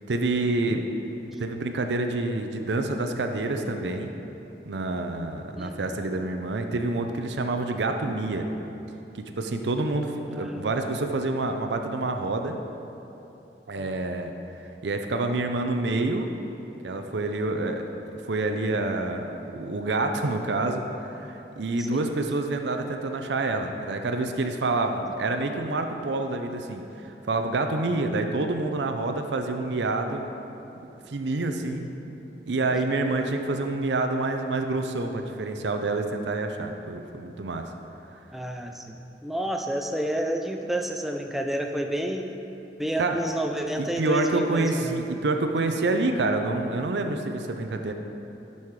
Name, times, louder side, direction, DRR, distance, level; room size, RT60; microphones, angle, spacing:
voice 1, 0.1-0.9 1.4-4.2 4.7-8.5 9.1-12.6 13.7-14.3 14.8-16.3 16.8-17.9 18.2-30.2 31.1-31.9 32.5-37.7 43.0-43.2 43.8-47.9, right 2 dB, 85° right, 5 dB, 0.6 m, -27 dB
voice 2, 5.6-5.9 10.3-10.7 21.8-22.0 31.5-31.9 33.0-33.3 38.3-42.3 42.8-45.0, right 1 dB, ahead, 3 dB, 0.4 m, -30 dB
11.0 x 5.6 x 4.7 m, 3.0 s
head